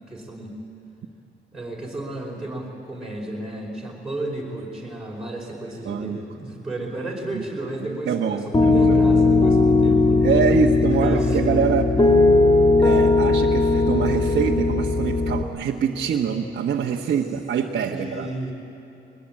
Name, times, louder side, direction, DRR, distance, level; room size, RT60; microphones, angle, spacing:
voice 1, 0.1-0.6 1.5-10.3 11.0-11.6 17.9-18.5, right 1 dB, 5° right, -3 dB, 5.2 m, -33 dB
voice 2, 5.9-6.2 7.3-7.4 8.1-8.9 10.2-11.9 12.8-18.3, right 7 dB, 60° right, -1 dB, 1.2 m, -24 dB
Piano, 8.5-15.4, left 3 dB, 25° left, 1.9 m, -18 dB
22.0 x 19.5 x 8.8 m, 2.7 s
cardioid pair, 90°, 20 cm